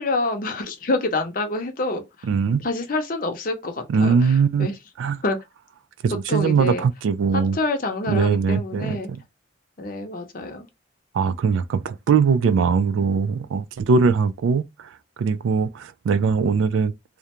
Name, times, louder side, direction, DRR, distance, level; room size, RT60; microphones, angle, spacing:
voice 1, 0.0-2.3 2.6-4.8 5.2-5.4 6.3-6.8 7.3-9.1 9.8-10.7, left 2 dB, 45° left, 0.6 m, -27 dB
voice 2, 2.3-2.6 3.9-4.7 5.0-5.2 6.0-7.6 8.1-9.2 11.1-14.9 15.2-16.9, right 5 dB, 80° right, 0.3 m, -21 dB
2.4 x 2.1 x 2.9 m
head